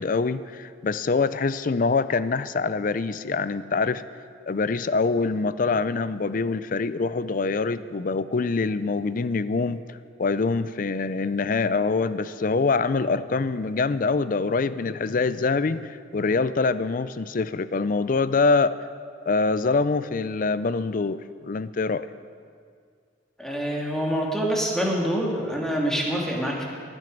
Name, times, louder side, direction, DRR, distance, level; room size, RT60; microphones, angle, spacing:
voice 1, 0.0-4.0 4.5-18.8 19.3-22.1, left 4 dB, 50° left, 15 dB, 0.5 m, -25 dB
voice 2, 23.4-26.6, equal, 5° left, -2 dB, 2.1 m, -26 dB
17.5 x 11.0 x 5.2 m, 2.2 s
head